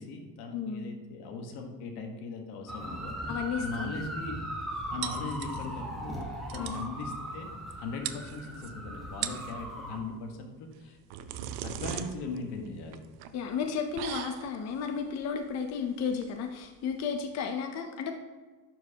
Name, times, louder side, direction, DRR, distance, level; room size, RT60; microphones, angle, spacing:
voice 1, 0.0-4.4 4.9-7.5 7.8-11.0 11.6-13.0, left 3 dB, 85° left, 3 dB, 1.3 m, -39 dB
voice 2, 0.5-1.0 3.3-4.0 6.6-6.8 13.3-18.1, left 6 dB, 45° left, 5 dB, 0.6 m, -33 dB
sound 1, 2.7-10.0, equal, ahead, 1.0 m, -39 dB
sound 2, 5.0-5.9 6.2-6.3 6.5-6.9 7.7-7.8 8.0-8.7 9.1-9.6 10.7-17.4, right 11 dB, 75° right, 0.6 m, -40 dB
11.5 x 4.7 x 2.8 m, 1.3 s
cardioid pair, 155°, 38 cm